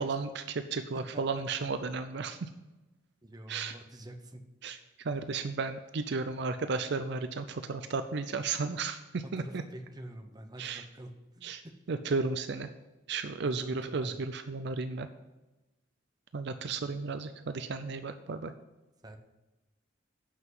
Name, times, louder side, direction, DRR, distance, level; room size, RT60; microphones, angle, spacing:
voice 1, 0.0-2.5 3.5-3.7 4.6-9.6 10.6-10.9 11.4-11.6 11.9-12.7 13.1-15.1 16.3-18.5, right 4 dB, 60° right, 9 dB, 0.5 m, -34 dB
voice 2, 1.1-1.4 3.2-4.5 9.2-11.7 13.4-14.2 19.0-19.2, right 1 dB, 20° right, 5 dB, 0.8 m, -46 dB
8.2 x 5.8 x 7.5 m, 1.1 s
head